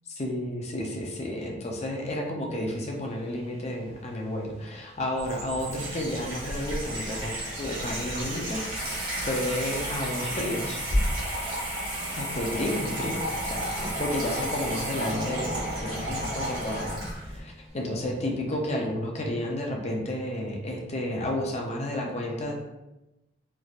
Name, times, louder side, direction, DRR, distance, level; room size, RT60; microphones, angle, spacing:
voice 1, 0.1-10.8 12.1-22.5, left 1 dB, 35° left, 0 dB, 0.5 m, -32 dB
sound 1, 2.7-18.1, right 3 dB, 35° right, 0.4 m, -48 dB
Water tap faucet / Sink (filling or washing), 5.2-17.4, equal, 50° right, 1.1 m, -32 dB
Bass guitar, 15.0-18.5, equal, 80° right, 1.2 m, -43 dB
3.2 x 2.6 x 2.3 m, 0.98 s
head